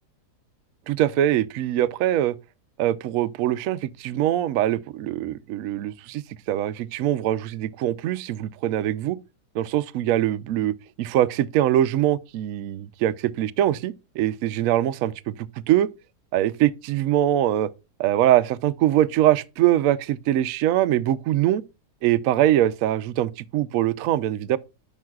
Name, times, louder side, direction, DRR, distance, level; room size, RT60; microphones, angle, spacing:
voice 1, 0.9-2.4 2.8-9.2 9.5-15.3 15.7-15.9 16.3-17.7 18.0-21.6 22.0-24.6, right 12 dB, 70° right, 0.8 m, -23 dB
12.0 x 5.6 x 2.3 m
omnidirectional pair, 1.8 m